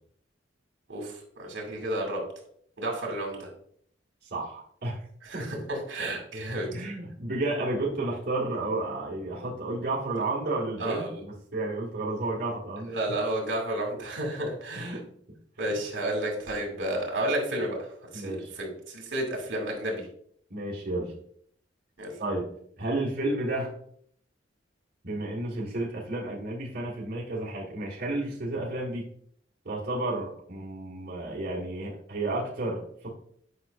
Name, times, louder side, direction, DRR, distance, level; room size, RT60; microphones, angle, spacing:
voice 1, 0.9-2.2 2.8-3.5 5.2-6.7 10.8-11.2 12.9-15.0 15.6-20.1 22.0-22.1, right 1 dB, 75° right, 0 dB, 2.4 m, -31 dB
voice 2, 4.2-5.0 5.3-5.5 6.7-13.0 14.7-15.1 15.7-15.8 18.1-18.5 20.5-21.1 22.2-22.5 22.8-23.7 25.0-29.1 29.6-33.1, right 2 dB, 55° right, -6 dB, 1.8 m, -32 dB
9.3 x 5.4 x 2.6 m, 0.64 s
head